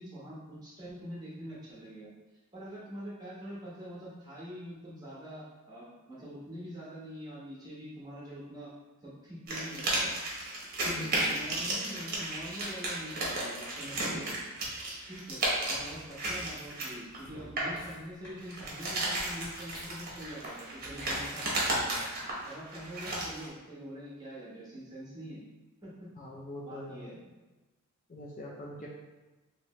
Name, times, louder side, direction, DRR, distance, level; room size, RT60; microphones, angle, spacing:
voice 1, 0.0-2.1 2.5-8.7 9.0-10.1 10.8-14.3 15.0-22.1 22.5-25.4 25.8-26.1 26.6-27.1, equal, 20° right, -7 dB, 1.1 m, -44 dB
sound 1, 9.5-17.8 18.4-23.5, right 2 dB, 45° right, 0.9 m, -34 dB
voice 2, 10.8-11.2 26.2-27.2 28.1-28.9, left 1 dB, 35° left, -2 dB, 0.4 m, -42 dB
sound 2, 15.9-21.1 21.4-21.6, equal, 20° left, 1.4 m, -52 dB
3.1 x 2.8 x 3.0 m, 1.1 s
head